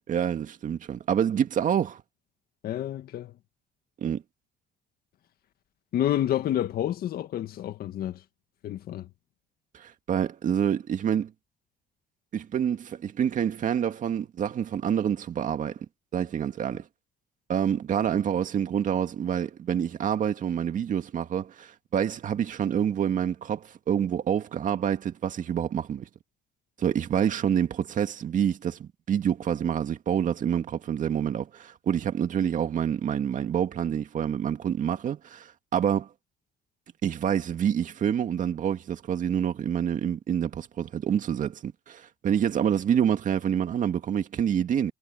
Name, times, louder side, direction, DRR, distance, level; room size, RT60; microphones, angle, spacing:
voice 1, 0.0-2.0 4.0-4.2 9.7-11.3 12.3-15.8 16.1-16.9 17.5-26.1 26.8-36.1 37.0-44.9, right 9 dB, 50° right, 2.1 m, -27 dB
voice 2, 2.6-3.3 5.9-8.2 8.6-9.1, left 11 dB, 65° left, 1.9 m, -29 dB
cardioid pair, 110°, 17 cm